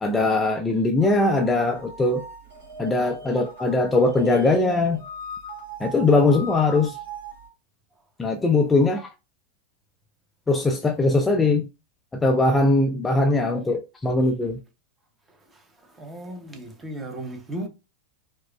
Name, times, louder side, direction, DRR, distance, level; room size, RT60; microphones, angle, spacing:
voice 1, 0.0-2.3 2.8-5.0 5.8-7.0 8.2-9.1 10.5-11.7 12.1-14.6, left 2 dB, 10° left, 0.4 m, -21 dB
sound 1, 1.0-7.5, right 1 dB, 60° right, 2.0 m, -39 dB
voice 2, 16.0-17.7, right 1 dB, 15° right, 0.8 m, -35 dB
4.6 x 2.1 x 2.2 m
figure-of-eight pair, 90°, 0 cm